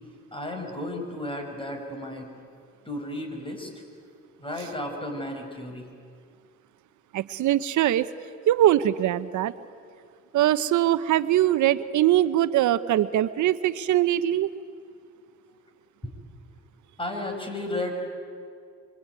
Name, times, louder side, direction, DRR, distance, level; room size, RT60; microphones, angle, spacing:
voice 1, 0.3-2.3 2.9-3.7 4.4-5.9 16.0-16.1 17.0-17.9, left 1 dB, 15° left, 3 dB, 6.2 m, -33 dB
voice 2, 7.1-8.1 8.5-9.5 10.3-14.5, right 12 dB, 75° right, 14 dB, 0.9 m, -22 dB
25.5 x 24.5 x 9.5 m, 2.3 s
cardioid pair, 90°, 30 cm